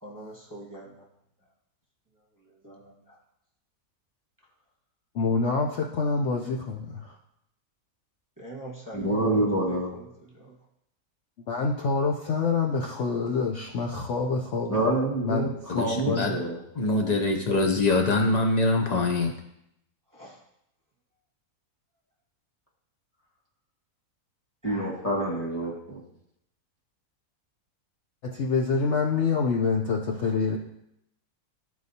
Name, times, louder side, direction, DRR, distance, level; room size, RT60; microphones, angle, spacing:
voice 1, 0.0-0.9 2.4-3.2 8.4-10.1 10.3-10.5 20.1-20.4 24.6-25.4, right 2 dB, 15° right, -5 dB, 1.1 m, -44 dB
voice 2, 5.1-7.1 11.5-14.8 15.2-16.4 28.2-30.6, left 4 dB, 60° left, 0 dB, 0.8 m, -26 dB
voice 3, 8.9-9.9 14.7-15.5 15.8-16.6 24.6-26.0, right 1 dB, 10° left, -4 dB, 1.6 m, -27 dB
voice 4, 15.7-16.3 16.8-19.4, left 2 dB, 80° left, 3 dB, 0.3 m, -24 dB
13.0 x 4.7 x 2.7 m, 0.80 s
omnidirectional pair, 1.6 m